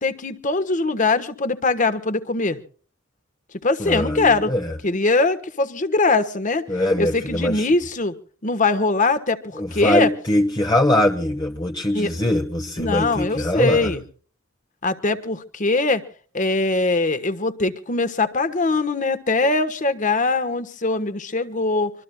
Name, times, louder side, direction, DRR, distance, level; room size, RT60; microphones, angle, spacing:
voice 1, 0.0-2.6 3.6-4.5 4.8-6.7 7.0-8.1 8.4-10.1 11.9-12.1 12.8-14.0 14.8-16.0 16.3-21.9, left 3 dB, 40° left, 1.3 m, -22 dB
voice 2, 3.8-4.7 6.7-7.7 9.6-13.9, left 1 dB, 20° left, 1.0 m, -22 dB
25.0 x 24.0 x 2.3 m
head